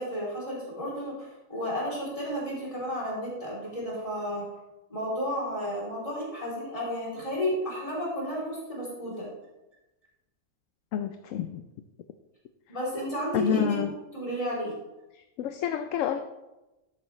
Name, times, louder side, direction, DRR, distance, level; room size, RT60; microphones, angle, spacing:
voice 1, 0.0-4.4 4.9-9.3 12.7-13.8 14.1-14.7, equal, 20° left, -5 dB, 3.2 m, -32 dB
voice 2, 10.9-11.6 13.3-13.9 15.4-16.2, left 9 dB, 70° left, 8 dB, 0.9 m, -28 dB
11.5 x 7.7 x 3.1 m, 1.0 s
omnidirectional pair, 1.6 m